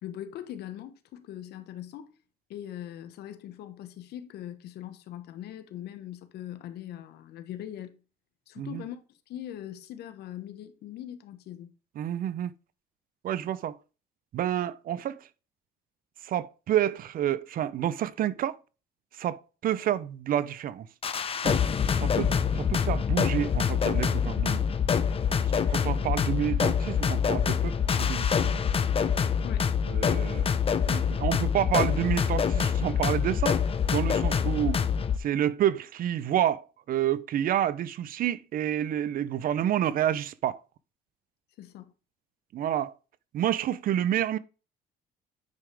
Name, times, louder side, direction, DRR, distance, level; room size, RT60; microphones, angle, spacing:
voice 1, 0.0-2.1 2.5-8.0 8.5-9.0 9.3-11.7 29.4-29.7 41.6-41.9, left 11 dB, 75° left, 1.3 m, -41 dB
voice 2, 12.0-12.5 13.2-13.8 14.3-15.3 16.2-18.6 19.1-20.9 21.4-21.6 22.0-24.6 25.5-27.7 28.0-28.6 29.9-30.5 30.9-33.6 33.9-34.8 35.2-36.6 36.9-40.6 42.5-42.9 43.3-44.4, right 11 dB, 60° right, 0.7 m, -29 dB
sound 1, 21.0-35.2, left 7 dB, 35° left, 0.9 m, -26 dB
9.4 x 5.0 x 3.5 m
cardioid pair, 110°, 17 cm